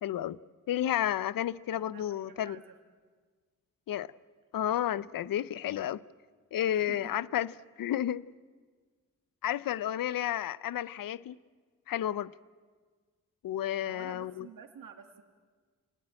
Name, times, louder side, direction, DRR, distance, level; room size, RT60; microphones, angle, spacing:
voice 1, 0.0-0.4 0.7-2.6 3.9-4.1 4.5-6.0 6.5-7.5 7.8-8.2 9.4-11.4 11.9-12.3 13.4-14.5, left 11 dB, 85° left, 0.6 m, -31 dB
voice 2, 1.7-2.8 6.6-7.1 13.8-15.2, right 7 dB, 80° right, 1.9 m, -50 dB
27.0 x 18.5 x 8.9 m
cardioid pair, 60°, 33 cm